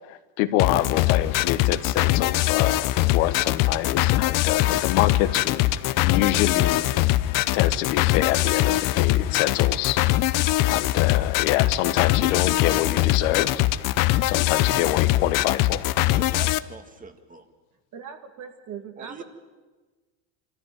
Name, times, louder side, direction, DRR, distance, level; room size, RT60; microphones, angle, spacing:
voice 1, 0.1-6.8 7.5-10.0 10.7-13.6 14.2-15.9, left 14 dB, 75° left, 9 dB, 1.5 m, -26 dB
sound 1, 0.6-16.6, left 15 dB, 50° left, 0.7 m, -22 dB
voice 2, 16.1-17.5 19.0-19.2, right 4 dB, 20° right, 8 dB, 1.8 m, -42 dB
voice 3, 17.9-19.2, right 7 dB, 45° right, 6 dB, 2.4 m, -40 dB
24.0 x 14.0 x 9.2 m, 1.3 s
supercardioid pair, 115°, 41 cm